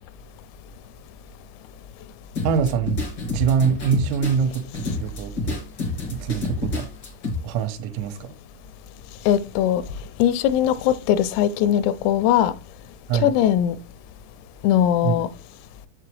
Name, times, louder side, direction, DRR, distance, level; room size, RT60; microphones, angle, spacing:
sound 1, 2.3-7.3, left 2 dB, 70° left, 1.0 m, -29 dB
voice 1, 2.5-3.0 3.3-5.6 6.1-6.9 7.4-8.3 13.1-13.3 15.0-15.2, right 7 dB, 90° right, 3.5 m, -24 dB
voice 2, 9.3-9.8 10.2-12.5 13.2-13.8 14.6-15.3, left 10 dB, 85° left, 3.2 m, -20 dB
7.7 x 7.0 x 3.2 m
omnidirectional pair, 5.9 m